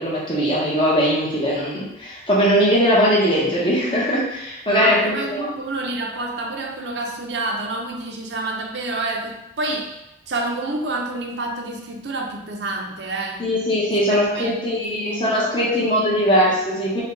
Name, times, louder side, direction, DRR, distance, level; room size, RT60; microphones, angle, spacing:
voice 1, 0.0-5.5 13.4-17.0, equal, 30° left, -6 dB, 1.1 m, -20 dB
voice 2, 4.7-10.0 10.3-13.5 13.9-15.7 16.0-16.2, right 2 dB, 80° right, 2 dB, 0.7 m, -28 dB
4.9 x 2.3 x 3.8 m, 0.91 s
head